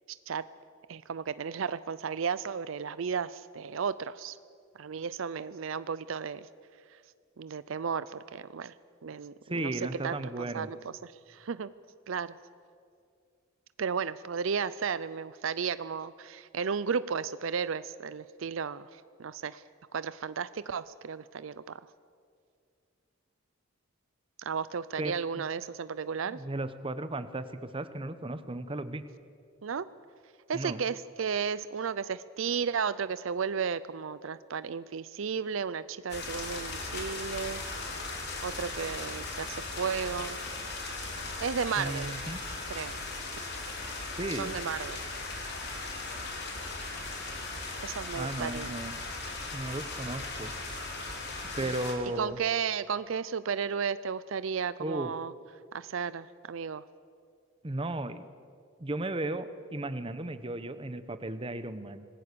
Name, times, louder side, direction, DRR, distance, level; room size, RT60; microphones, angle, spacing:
voice 1, 0.1-0.5 0.9-4.4 4.8-6.5 7.4-8.7 9.0-10.8 11.0-11.7 12.1-12.3 13.8-19.6 19.9-21.8 24.4-26.4 29.6-29.9 30.5-37.6 38.4-40.4 41.4-42.1 42.7-42.9 44.4-45.0 47.8-48.8 51.6-51.7 52.2-55.3 55.7-56.8, right 6 dB, 70° right, 16 dB, 0.5 m, -34 dB
voice 2, 9.5-10.7 25.0-25.1 26.2-29.0 30.5-30.8 41.8-42.4 44.2-44.6 48.1-48.9 49.5-50.5 51.5-52.4 54.8-55.1 57.6-58.2 58.8-62.0, right 2 dB, 25° right, 11 dB, 0.9 m, -35 dB
sound 1, 36.1-51.9, left 3 dB, 50° left, 3.6 m, -38 dB
26.0 x 18.5 x 6.9 m, 2.2 s
head